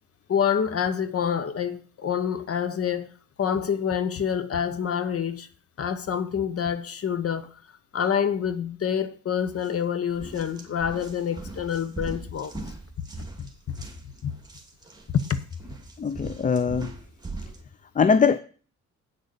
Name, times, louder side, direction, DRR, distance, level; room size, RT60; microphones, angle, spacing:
voice 1, 0.3-3.1 3.4-5.5 5.8-7.5 7.9-12.5 13.4-13.5 14.2-14.3 15.1-15.4, left 8 dB, 50° left, 1.1 m, -27 dB
sound 1, 9.5-9.7 10.1-17.6, right 2 dB, 15° right, 2.4 m, -40 dB
voice 2, 16.0-16.9 18.0-18.4, left 6 dB, 25° left, 0.5 m, -21 dB
8.8 x 6.5 x 6.8 m
cardioid pair, 90°, 30 cm